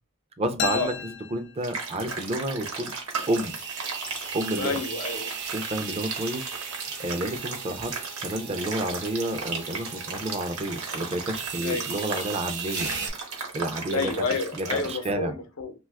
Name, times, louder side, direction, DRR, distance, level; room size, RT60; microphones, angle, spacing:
voice 1, 0.4-2.9 3.3-3.6 4.3-4.8 5.5-12.9 13.5-14.1 14.5-15.3, right 1 dB, 30° right, 0.4 m, -30 dB
sound 1, 0.6-2.3, left 6 dB, 60° left, 0.4 m, -34 dB
sound 2, 1.6-14.9, right 4 dB, 90° right, 0.9 m, -36 dB
sound 3, 3.2-13.1, right 5 dB, 55° right, 0.7 m, -37 dB
voice 2, 4.6-5.3 11.6-11.9 13.9-15.7, left 4 dB, 85° left, 0.7 m, -29 dB
2.8 x 2.3 x 3.3 m
head